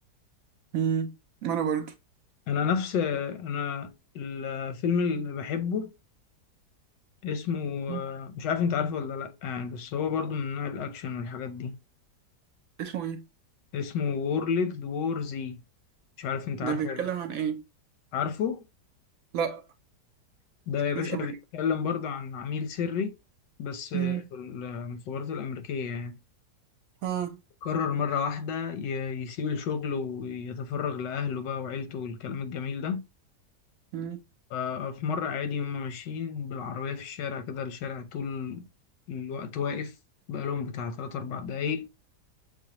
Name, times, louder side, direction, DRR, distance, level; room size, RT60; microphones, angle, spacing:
voice 1, 0.7-1.1 1.4-1.9 7.9-8.0 12.8-13.3 16.6-17.6 19.3-19.6 20.9-21.3 23.9-24.2 27.0-27.4 33.9-34.2, right 8 dB, 65° right, 0.9 m, -30 dB
voice 2, 2.5-5.9 7.2-11.8 13.7-15.6 16.2-17.0 18.1-18.6 20.7-23.1 23.6-26.2 27.6-33.0 34.5-38.7 39.1-39.9 40.3-41.9, left 6 dB, 90° left, 1.4 m, -31 dB
6.4 x 2.2 x 2.8 m
omnidirectional pair, 1.8 m